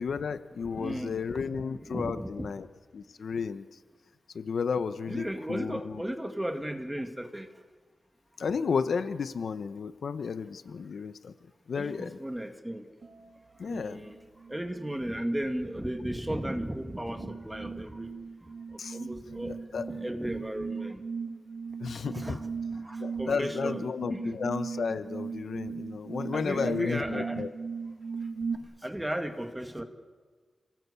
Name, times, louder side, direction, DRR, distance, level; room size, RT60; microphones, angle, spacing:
voice 1, 0.0-2.7 2.9-3.7 4.3-5.9 8.4-11.3 11.7-12.2 13.6-14.0 18.8-19.0 19.7-19.9 21.8-22.4 23.0-27.5, left 5 dB, 65° left, 12 dB, 0.9 m, -32 dB
voice 2, 0.7-2.5 5.1-7.5 11.7-12.9 13.6-14.2 14.5-18.1 18.4-19.6 19.9-21.0 21.9-23.8 24.1-24.3 26.3-27.4 28.8-29.8, right 1 dB, 5° right, 7 dB, 1.8 m, -35 dB
sound 1, 13.0-13.3 13.8-28.6, right 5 dB, 55° right, 3.0 m, -38 dB
28.0 x 18.5 x 8.3 m, 1.5 s
wide cardioid pair, 165°, 0 cm